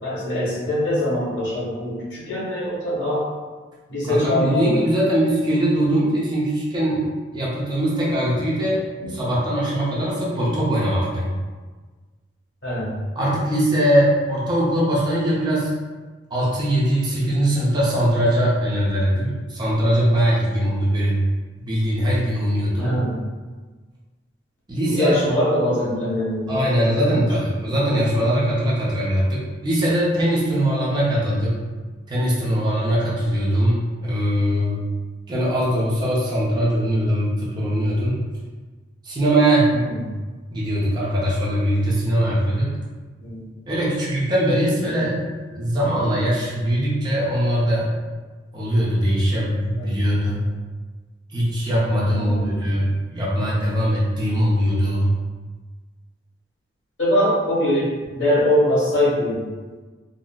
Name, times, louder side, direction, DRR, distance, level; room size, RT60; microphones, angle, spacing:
voice 1, 0.0-3.2 3.9-4.8 9.0-9.1 12.6-12.9 22.8-23.2 24.9-27.1 39.7-40.0 43.2-43.5 44.9-45.4 49.8-49.9 52.0-52.6 57.0-57.9 58.1-59.4, left 1 dB, 75° left, -8 dB, 1.3 m, -23 dB
voice 2, 4.1-11.3 13.2-15.8 16.3-21.2 21.7-23.0 24.7-25.2 26.5-31.5 32.1-34.8 35.3-38.2 39.0-39.7 40.5-42.7 43.7-45.2 45.5-47.9 48.5-50.5 51.3-55.2, equal, 25° right, -6 dB, 0.5 m, -21 dB
3.8 x 2.0 x 2.3 m, 1.3 s
head